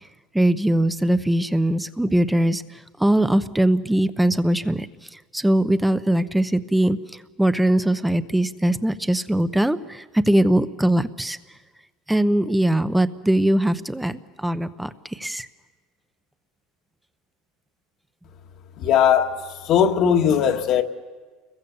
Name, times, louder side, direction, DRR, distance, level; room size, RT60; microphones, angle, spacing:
voice 1, 0.3-2.6 3.0-4.9 5.3-7.0 7.4-11.4 12.1-15.5, right 1 dB, 5° right, 0.9 m, -21 dB
voice 2, 18.8-19.4 19.6-20.8, left 8 dB, 55° left, 1.7 m, -18 dB
29.0 x 22.0 x 7.2 m
supercardioid pair, 125°, 0 cm